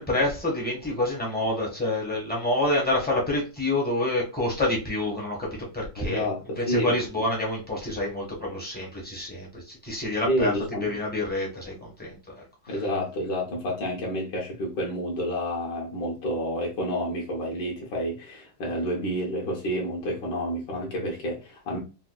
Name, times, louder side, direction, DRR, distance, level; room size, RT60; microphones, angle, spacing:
voice 1, 0.0-12.2 12.7-12.8, left 1 dB, 10° left, 0.4 m, -28 dB
voice 2, 6.0-7.0 10.3-10.9 12.7-21.8, equal, 70° left, 1.4 m, -29 dB
4.5 x 2.2 x 2.2 m
omnidirectional pair, 2.1 m